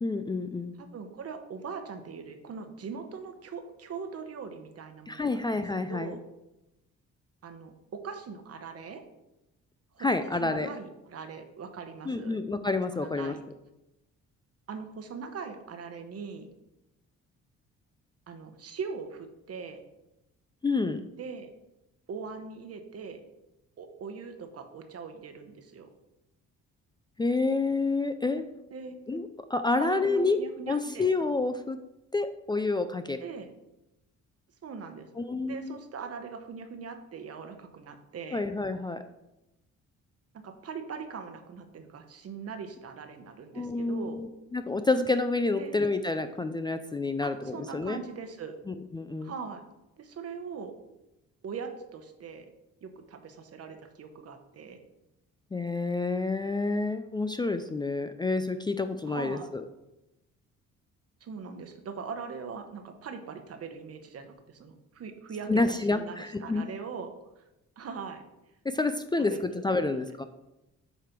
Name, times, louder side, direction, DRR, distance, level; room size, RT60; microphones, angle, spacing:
voice 1, 0.0-0.8 5.1-6.1 10.0-10.7 12.1-13.4 20.6-21.1 27.2-28.5 29.1-30.4 30.7-31.8 32.1-33.2 35.2-35.8 38.3-39.0 43.5-48.0 48.7-49.3 55.5-59.6 65.5-66.6 68.6-70.2, left 3 dB, 15° left, 8 dB, 0.4 m, -29 dB
voice 2, 0.8-5.5 5.9-6.2 7.4-9.0 9.9-10.1 10.4-12.4 12.9-13.4 14.7-16.5 18.3-19.8 21.2-21.5 22.1-23.2 23.8-25.9 28.7-29.0 29.8-31.1 33.2-33.5 34.6-38.4 40.4-44.2 45.6-45.8 47.2-48.6 49.2-49.6 50.0-50.7 51.4-52.5 52.8-54.8 59.1-59.5 61.2-65.5 65.9-67.1 67.4-67.5 67.8-68.2 69.2-70.0, right 5 dB, 55° right, 7 dB, 1.1 m, -41 dB
8.1 x 3.3 x 5.9 m, 0.93 s
cardioid pair, 90°, 30 cm